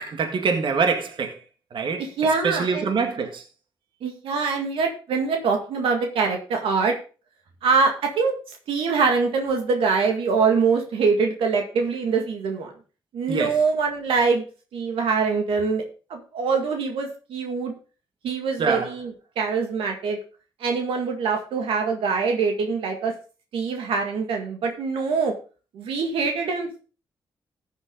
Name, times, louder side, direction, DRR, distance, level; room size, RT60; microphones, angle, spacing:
voice 1, 0.0-1.4 1.7-2.0 2.4-3.4 13.3-13.6 18.6-18.9, right 5 dB, 65° right, 1.9 m, -24 dB
voice 2, 2.0-2.9 4.0-6.9 7.6-8.3 8.7-12.7 13.1-14.4 14.7-15.8 16.1-17.7 18.2-20.2 20.6-23.1 23.5-25.3 25.7-26.8, right 5 dB, 85° right, 1.8 m, -24 dB
13.5 x 7.6 x 3.8 m
supercardioid pair, 60°, 9 cm